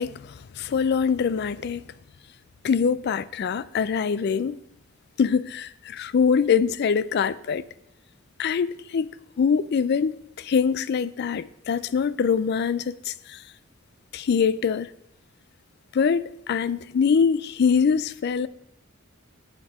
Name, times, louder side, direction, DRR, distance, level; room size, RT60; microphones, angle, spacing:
voice 1, 0.0-1.8 2.6-4.6 5.2-7.6 8.4-9.1 9.4-10.1 10.4-13.4 14.1-14.9 15.9-18.5, left 6 dB, 50° left, 0.4 m, -23 dB
7.4 x 6.4 x 5.9 m
head